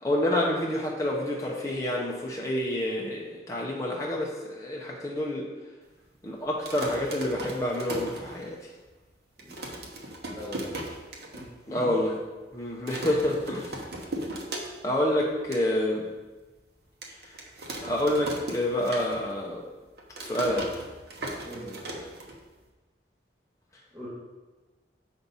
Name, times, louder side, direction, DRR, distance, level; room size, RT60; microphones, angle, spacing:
voice 1, 0.0-5.5 6.2-8.6 11.7-12.1 12.5-13.8 14.8-16.0 17.2-17.3 17.8-19.6 20.2-20.7, left 1 dB, 20° left, -3 dB, 0.7 m, -28 dB
sound 1, 6.5-8.8 9.1-9.2 9.4-11.4 11.8-11.9 12.1-12.5 12.9-15.0 15.3-15.6 16.1-16.2 17.0-19.5 19.7-22.7, right 1 dB, 60° right, 1.0 m, -37 dB
voice 2, 10.3-10.7 11.3-11.5 11.7-11.9 21.4-22.0 23.9-24.1, equal, 15° right, -13 dB, 2.3 m, -40 dB
7.1 x 5.2 x 4.0 m, 1.2 s
head